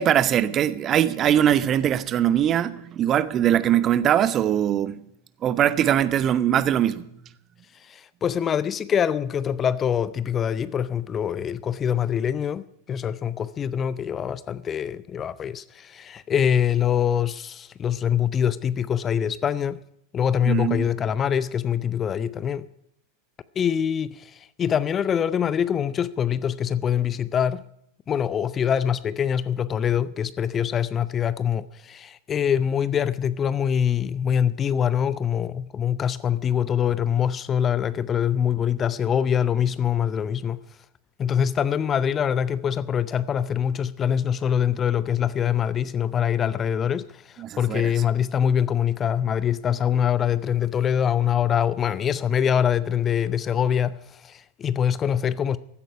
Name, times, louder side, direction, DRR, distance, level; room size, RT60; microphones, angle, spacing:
voice 1, 0.0-4.9 5.4-7.1 20.4-20.9 47.4-47.9, right 10 dB, 30° right, 0.8 m, -21 dB
voice 2, 7.8-19.8 20.1-22.7 23.6-27.6 28.1-40.6 41.2-55.6, left 8 dB, 25° left, 0.5 m, -24 dB
15.5 x 13.5 x 4.7 m
figure-of-eight pair, 90°, 0 cm